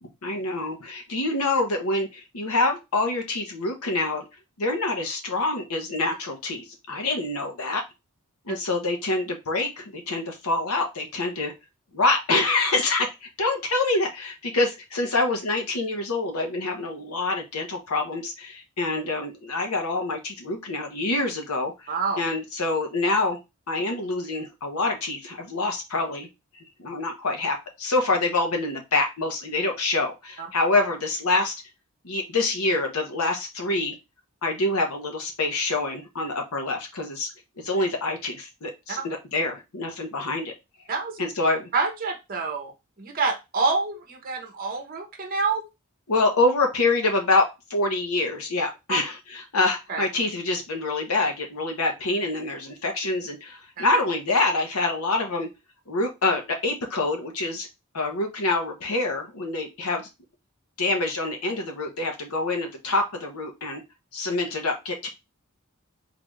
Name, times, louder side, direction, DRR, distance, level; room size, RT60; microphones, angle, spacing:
voice 1, 0.0-4.3 4.6-7.8 8.5-11.5 11.9-23.4 23.7-26.3 26.8-31.5 32.0-34.0 34.4-37.3 37.6-40.5 41.2-41.7 46.1-55.5 55.9-57.7 57.9-60.1 60.8-63.8 64.1-65.1, left 2 dB, 75° left, 3 dB, 0.9 m, -26 dB
voice 2, 21.9-22.2 30.4-30.5 38.9-39.0 40.9-41.2 41.7-42.7 43.0-45.6 48.9-49.0 49.9-50.1 53.8-53.9, right 4 dB, 40° right, 3 dB, 0.8 m, -27 dB
3.8 x 2.4 x 3.1 m, 0.24 s
head